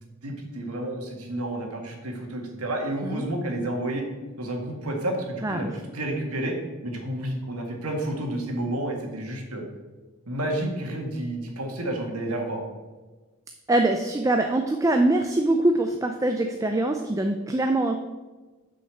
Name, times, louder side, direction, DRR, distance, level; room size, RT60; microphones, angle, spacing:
voice 1, 0.0-4.0 4.4-6.6 6.8-9.6 10.3-12.6, right 1 dB, 85° right, 1 dB, 1.8 m, -30 dB
voice 2, 13.7-17.9, right 2 dB, 15° right, 5 dB, 0.4 m, -23 dB
6.5 x 5.5 x 6.7 m, 1.3 s
head